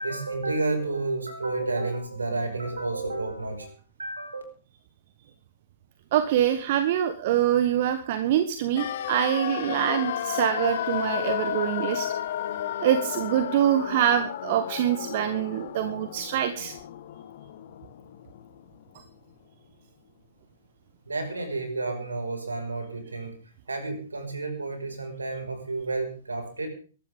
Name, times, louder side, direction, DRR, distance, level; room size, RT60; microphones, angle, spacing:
voice 1, 0.0-3.7 4.0-4.4 21.1-23.4 23.7-26.7, right 3 dB, 75° right, 4 dB, 5.4 m, -31 dB
voice 2, 6.1-12.1 12.8-16.7, right 10 dB, 45° right, 10 dB, 1.2 m, -25 dB
sound 1, 8.8-18.7 19.0-19.1, left 11 dB, 50° left, 1.2 m, -33 dB
23.0 x 12.5 x 3.7 m, 0.40 s
figure-of-eight pair, 110°, 0 cm